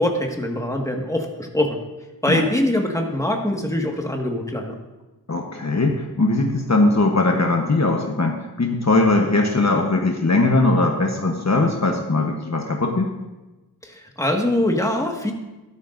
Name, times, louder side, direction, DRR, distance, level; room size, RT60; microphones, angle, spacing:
voice 1, 0.0-1.8 2.2-4.7 13.8-15.3, left 1 dB, 10° left, 1 dB, 1.7 m, -23 dB
voice 2, 5.3-13.1, left 2 dB, 45° left, 2 dB, 1.1 m, -20 dB
12.5 x 12.0 x 2.6 m, 1.1 s
wide cardioid pair, 50°, 38 cm